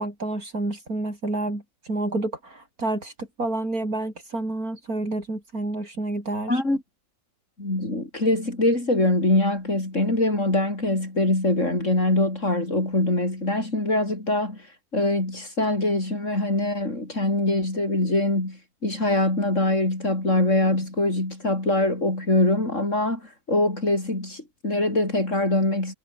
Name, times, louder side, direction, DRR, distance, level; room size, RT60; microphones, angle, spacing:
voice 1, 0.0-6.6, right 2 dB, 80° right, 7.1 m, -29 dB
voice 2, 6.5-6.8 7.6-14.7 14.9-25.9, left 2 dB, 55° left, 6.6 m, -23 dB
omnidirectional pair, 1.5 m